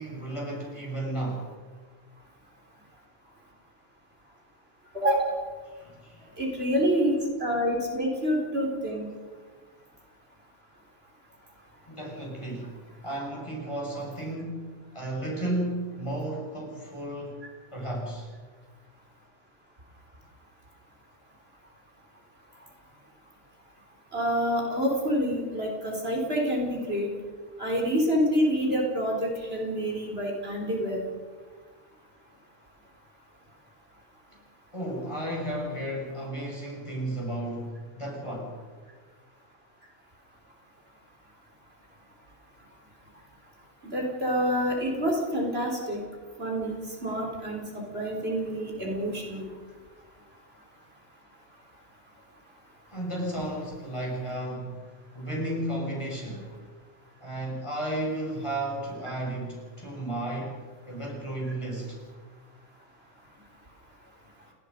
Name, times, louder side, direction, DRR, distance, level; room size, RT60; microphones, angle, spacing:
voice 1, 0.0-1.5 5.7-6.3 11.9-12.7 13.0-17.4 17.7-18.3 34.7-38.6 52.9-54.8 55.1-56.5 57.2-60.6 60.9-62.0, right 1 dB, 25° left, -1 dB, 6.2 m, -33 dB
voice 2, 4.9-5.4 6.4-7.1 7.4-9.1 24.1-27.1 27.6-31.1 43.8-46.0 46.4-49.5, equal, 55° right, 0 dB, 4.6 m, -27 dB
29.5 x 19.5 x 5.4 m, 1.5 s
omnidirectional pair, 1.2 m